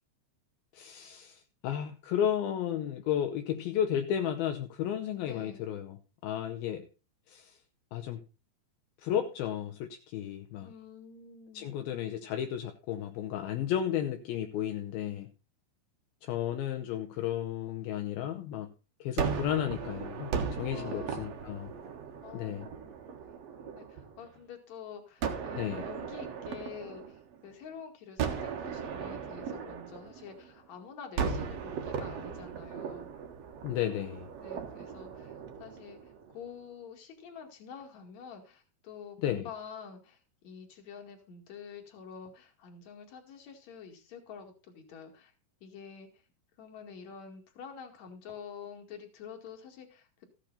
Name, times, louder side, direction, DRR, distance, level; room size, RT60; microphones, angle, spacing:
voice 1, 0.7-6.0 6.2-6.9 7.3-7.6 7.9-8.2 9.0-10.7 11.5-15.3 16.2-18.7 19.0-21.7 22.3-22.7 25.6-25.8 33.6-34.3 39.2-39.5, left 10 dB, 75° left, 6 dB, 2.2 m, -33 dB
voice 2, 5.3-5.6 10.6-11.8 20.7-21.3 22.2-23.0 23.8-33.1 34.4-45.3 45.6-46.1 46.6-50.3, left 6 dB, 45° left, 3 dB, 2.8 m, -48 dB
Gunshot gunfire, 19.2-24.3 25.2-27.6 28.2-30.7 31.2-36.4, right 6 dB, 70° right, 1.5 m, -37 dB
14.5 x 8.1 x 4.1 m, 0.32 s
omnidirectional pair, 5.2 m